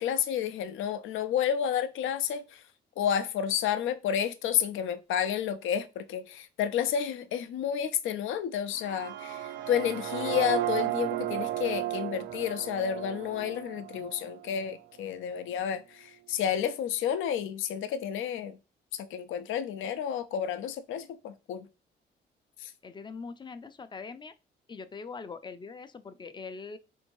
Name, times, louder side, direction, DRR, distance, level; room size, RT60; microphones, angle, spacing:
voice 1, 0.0-2.6 3.0-18.6 18.9-21.7 22.6-22.7, left 9 dB, 80° left, 0.5 m, -31 dB
sound 1, 8.7-14.7, right 13 dB, 75° right, 0.5 m, -34 dB
voice 2, 22.8-24.3 24.7-26.8, left 4 dB, 25° left, 0.4 m, -42 dB
4.2 x 2.7 x 3.0 m
cardioid pair, 90°, 20 cm